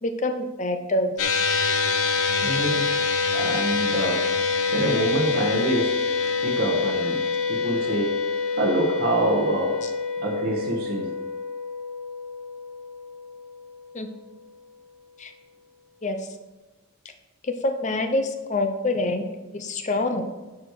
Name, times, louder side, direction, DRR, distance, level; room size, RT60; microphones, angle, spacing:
voice 1, 0.0-1.4 13.9-14.1 15.2-15.3 16.0-16.3 17.4-19.3 19.5-20.2, left 2 dB, 35° left, 7 dB, 0.8 m, -26 dB
sound 1, 1.2-13.7, left 5 dB, 85° left, 0.8 m, -26 dB
voice 2, 2.4-2.9 3.3-4.3 4.7-7.2 7.5-8.1 8.6-9.9 10.2-11.2, right 1 dB, 45° right, -2 dB, 1.5 m, -26 dB
11.5 x 4.9 x 4.8 m, 1.2 s
head